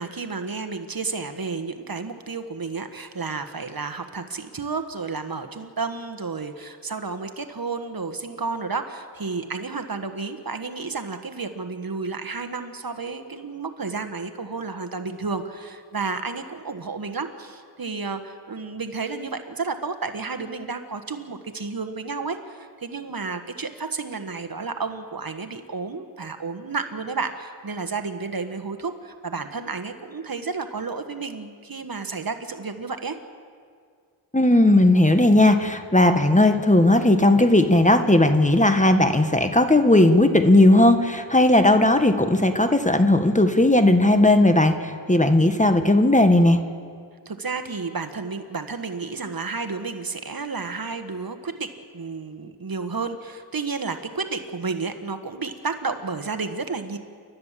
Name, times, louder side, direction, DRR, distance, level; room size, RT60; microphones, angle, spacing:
voice 1, 0.0-33.2 45.4-45.6 47.2-57.0, right 4 dB, 55° right, 8 dB, 1.6 m, -31 dB
voice 2, 34.3-46.6, left 1 dB, 15° left, 7 dB, 1.6 m, -17 dB
29.0 x 12.5 x 7.5 m, 2.1 s
cardioid pair, 45°, 43 cm